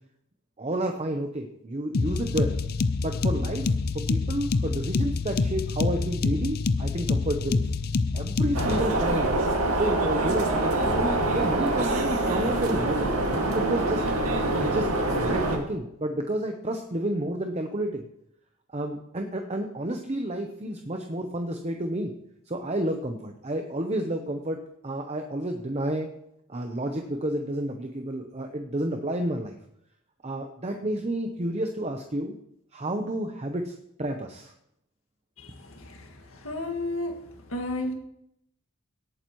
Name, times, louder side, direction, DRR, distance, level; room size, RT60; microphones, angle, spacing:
voice 1, 0.6-2.5 3.0-7.7 8.1-9.4 9.7-14.0 14.6-14.9 15.2-18.0 18.7-22.1 22.5-26.1 26.5-29.6 30.2-32.3 32.7-34.5, right 1 dB, 30° right, 4 dB, 0.8 m, -30 dB
sound 1, 1.9-8.8, left 3 dB, 45° left, 0.5 m, -26 dB
sound 2, 8.5-15.6, right 2 dB, 85° right, 2.0 m, -25 dB
voice 2, 35.4-37.2 37.5-37.9, left 2 dB, 65° left, 3 dB, 1.9 m, -33 dB
18.0 x 8.9 x 3.1 m, 0.77 s
head